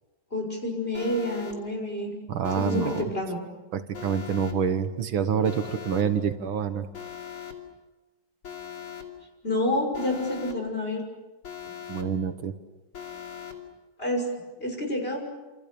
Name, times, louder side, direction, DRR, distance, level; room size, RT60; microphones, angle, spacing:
voice 1, 0.3-2.1 2.5-3.4 9.4-11.0 14.0-14.3 14.6-15.3, left 1 dB, 25° left, 2 dB, 6.3 m, -28 dB
Alarm, 0.9-1.5 2.4-3.0 3.9-4.5 5.4-6.0 6.9-7.5 8.4-9.0 9.9-10.5 11.4-12.0 12.9-13.5, left 8 dB, 80° left, 3.9 m, -40 dB
voice 2, 2.3-3.0 3.7-6.9 11.9-12.5, right 7 dB, 75° right, 9 dB, 2.0 m, -27 dB
28.5 x 28.5 x 7.0 m, 1.1 s
omnidirectional pair, 2.3 m